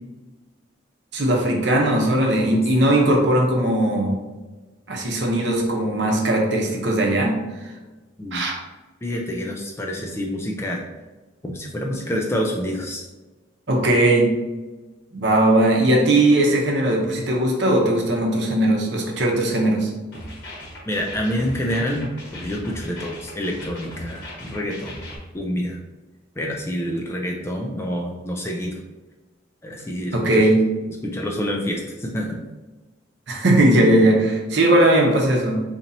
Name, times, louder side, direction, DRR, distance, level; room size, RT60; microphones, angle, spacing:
voice 1, 1.1-4.2 4.9-7.3 8.3-8.5 13.7-14.3 15.1-19.9 30.1-30.6 33.3-35.6, right 1 dB, 60° right, 0 dB, 0.8 m, -18 dB
voice 2, 9.0-10.8 11.4-13.1 20.9-25.0 25.3-25.8 26.4-28.8 29.6-30.5 31.0-32.4, equal, 15° left, 0 dB, 0.3 m, -27 dB
sound 1, 20.1-25.2, left 1 dB, 65° left, 1.2 m, -38 dB
4.1 x 2.9 x 2.6 m, 1.2 s
head